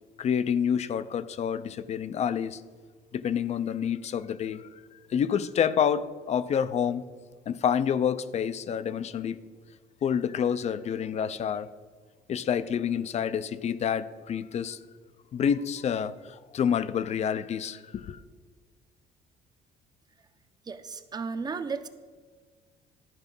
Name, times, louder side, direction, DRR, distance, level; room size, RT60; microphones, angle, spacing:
voice 1, 0.2-2.6 3.1-4.7 5.1-7.1 7.5-9.4 10.0-11.7 12.3-14.8 15.3-18.2, left 8 dB, 40° left, 0.5 m, -28 dB
voice 2, 20.7-21.9, right 5 dB, 25° right, 0.6 m, -34 dB
12.0 x 4.9 x 5.4 m
cardioid pair, 110°, 17 cm